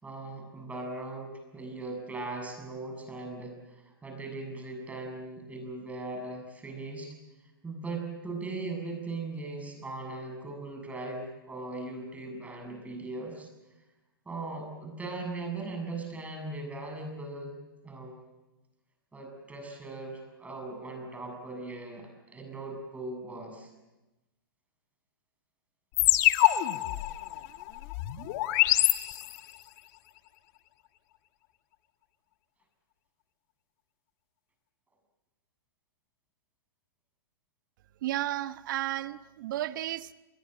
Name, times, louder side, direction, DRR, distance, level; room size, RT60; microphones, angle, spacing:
voice 1, 0.0-7.1 7.6-13.5 14.3-17.5 17.8-18.3 19.1-23.7, right 2 dB, 10° right, 3 dB, 7.2 m, -39 dB
sound 1, 26.0-29.6, left 17 dB, 45° left, 1.5 m, -26 dB
voice 2, 38.0-40.1, right 14 dB, 60° right, 14 dB, 1.0 m, -33 dB
28.5 x 22.5 x 7.8 m, 1.1 s
hypercardioid pair, 115°, 12 cm